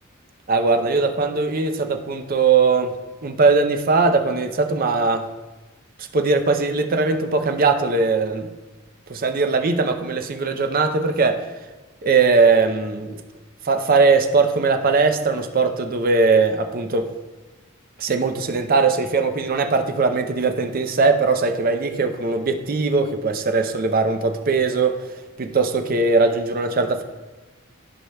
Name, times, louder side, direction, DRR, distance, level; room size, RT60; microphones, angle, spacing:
voice 1, 0.5-2.9 3.2-5.3 6.0-8.5 9.1-11.5 12.0-13.2 13.6-17.1 18.0-25.1 25.4-27.0, right 4 dB, 40° right, 6 dB, 0.5 m, -20 dB
13.5 x 5.0 x 2.2 m, 1.2 s
head